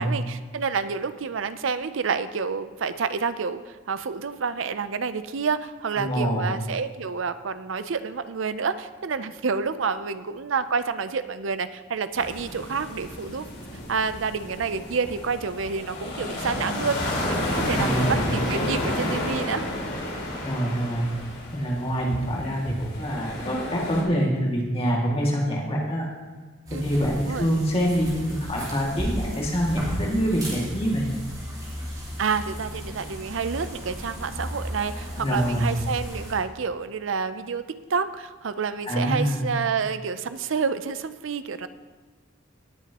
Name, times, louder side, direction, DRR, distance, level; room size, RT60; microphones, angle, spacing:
voice 1, 0.0-13.5 13.9-19.6 26.7-26.8 27.1-27.5 32.2-37.6 37.9-41.7, right 5 dB, 70° right, 12 dB, 0.5 m, -29 dB
voice 2, 6.0-6.5 17.7-18.3 20.4-21.0 21.5-26.1 26.8-31.1 35.2-35.7 38.9-39.5, equal, 30° left, -3 dB, 2.2 m, -25 dB
sound 1, 12.1-24.0, left 1 dB, 55° left, 2.8 m, -31 dB
sound 2, 26.7-36.3, equal, 20° right, 3.9 m, -35 dB
18.5 x 9.1 x 2.9 m, 1.4 s
head